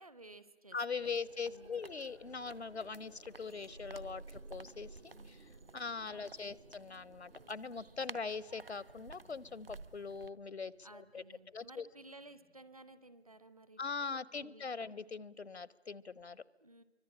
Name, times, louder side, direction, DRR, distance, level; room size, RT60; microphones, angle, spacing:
voice 1, 0.0-1.1 1.5-1.8 6.1-6.6 10.8-14.9 16.6-16.8, right 2 dB, 30° right, 13 dB, 0.9 m, -56 dB
voice 2, 0.7-5.5 5.7-11.2 11.5-11.9 13.8-16.4, left 5 dB, 70° left, 21 dB, 0.8 m, -42 dB
sound 1, 1.0-10.3, right 4 dB, 55° right, 1.0 m, -55 dB
sound 2, 1.0-13.9 16.2-16.3, right 2 dB, 80° right, 3.2 m, -58 dB
25.5 x 24.5 x 8.7 m, 1.1 s
figure-of-eight pair, 160°, 34 cm